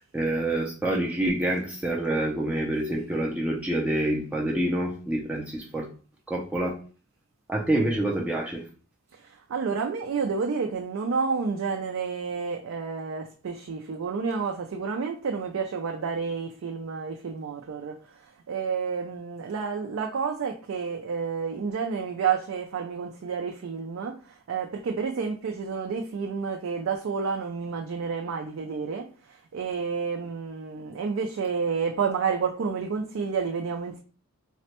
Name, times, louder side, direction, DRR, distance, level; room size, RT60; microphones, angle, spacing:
voice 1, 0.0-5.9 6.3-6.7 7.5-8.6, right 1 dB, 5° right, -3 dB, 0.4 m, -27 dB
voice 2, 9.2-17.9 18.5-24.1 24.5-29.1 29.5-34.0, right 5 dB, 75° right, 2 dB, 0.4 m, -30 dB
4.0 x 2.1 x 2.8 m, 0.39 s
head